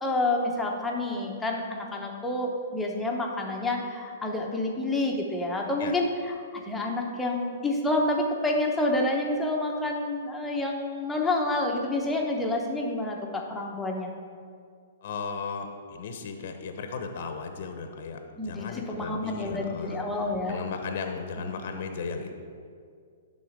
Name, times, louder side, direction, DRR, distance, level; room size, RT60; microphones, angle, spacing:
voice 1, 0.0-14.1 18.4-20.6, left 2 dB, 5° left, -1 dB, 1.1 m, -28 dB
voice 2, 15.0-20.0 20.5-22.3, left 5 dB, 55° left, 6 dB, 0.9 m, -35 dB
11.0 x 3.9 x 6.6 m, 2.2 s
hypercardioid pair, 145°, 0 cm